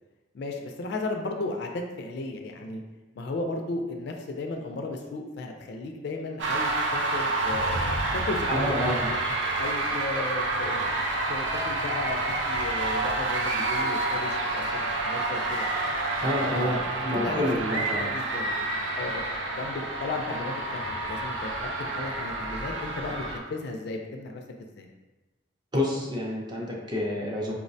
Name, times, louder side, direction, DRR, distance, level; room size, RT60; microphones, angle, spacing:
voice 1, 0.3-2.8 3.2-9.2 9.6-11.0 11.3-15.7 16.2-20.6 20.9-21.5 21.8-24.9, left 2 dB, 60° left, 3 dB, 0.3 m, -35 dB
sound 1, 6.4-23.4, right 2 dB, 75° right, 0.5 m, -29 dB
voice 2, 8.5-9.3 9.8-10.0 16.2-18.1 25.7-27.5, left 1 dB, 25° right, -3 dB, 0.4 m, -29 dB
Wind instrument woodwind instrument, 19.5-23.3, left 5 dB, 45° right, 0.8 m, -42 dB
4.5 x 2.1 x 2.6 m, 1.2 s
head